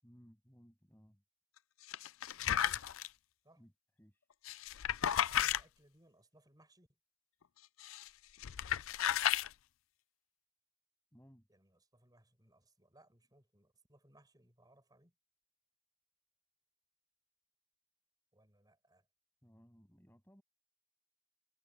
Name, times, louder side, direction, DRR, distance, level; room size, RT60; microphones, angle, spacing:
voice 1, 0.0-1.2 3.6-3.7 4.0-4.3 11.1-11.5 19.4-20.4, equal, 10° left, 7.7 m, -62 dB
sound 1, 1.9-3.1 4.5-5.6 7.8-8.1 8.4-9.5, left 10 dB, 60° left, 0.4 m, -33 dB
voice 2, 2.5-2.9 3.4-3.6 5.3-7.0 11.5-15.1 18.3-19.1, right 1 dB, 15° right, 5.9 m, -67 dB
head